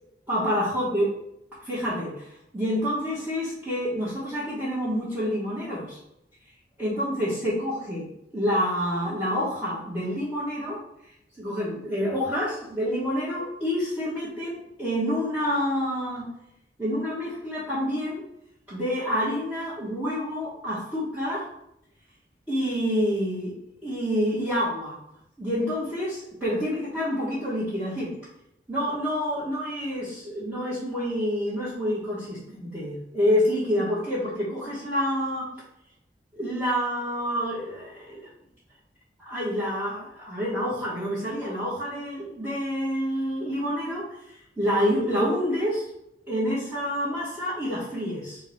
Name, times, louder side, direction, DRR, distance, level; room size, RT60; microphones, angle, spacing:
voice 1, 0.3-1.0 1.6-2.3 2.5-6.0 6.8-10.8 11.4-16.3 16.8-18.2 18.7-21.4 22.5-23.5 23.8-25.0 25.4-28.1 28.7-35.5 36.3-38.2 39.2-45.8 46.3-48.4, equal, 10° right, -11 dB, 1.1 m, -28 dB
3.7 x 2.7 x 4.3 m, 0.81 s
head